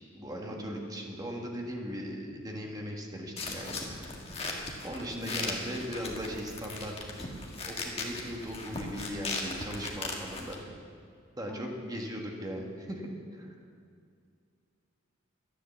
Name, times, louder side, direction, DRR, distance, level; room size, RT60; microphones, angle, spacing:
voice 1, 0.1-3.8 4.8-6.9 7.2-7.3 7.7-10.6 11.4-13.1 13.3-13.6, equal, 20° right, 0 dB, 1.6 m, -38 dB
sound 1, 3.4-10.6, left 3 dB, 30° left, 1.7 m, -38 dB
voice 2, 5.0-5.3 10.4-10.5 11.5-11.7, left 1 dB, 10° left, -2 dB, 1.3 m, -44 dB
11.5 x 10.5 x 7.1 m, 2.2 s
head